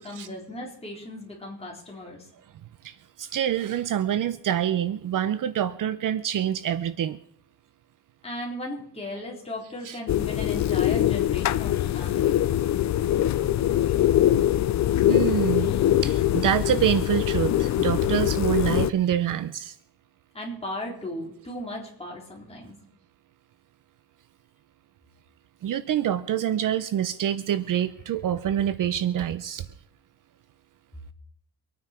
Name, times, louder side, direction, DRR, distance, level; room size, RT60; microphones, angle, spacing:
voice 1, 0.0-2.3 8.2-12.4 20.3-22.8, left 1 dB, 15° left, -3 dB, 3.8 m, -36 dB
voice 2, 2.8-7.2 9.8-10.0 15.1-19.8 25.6-29.6, right 10 dB, 55° right, 13 dB, 0.6 m, -26 dB
sound 1, 10.1-18.9, left 12 dB, 45° left, 0.5 m, -23 dB
24.5 x 9.4 x 4.4 m, 0.69 s
cardioid pair, 165°, 39 cm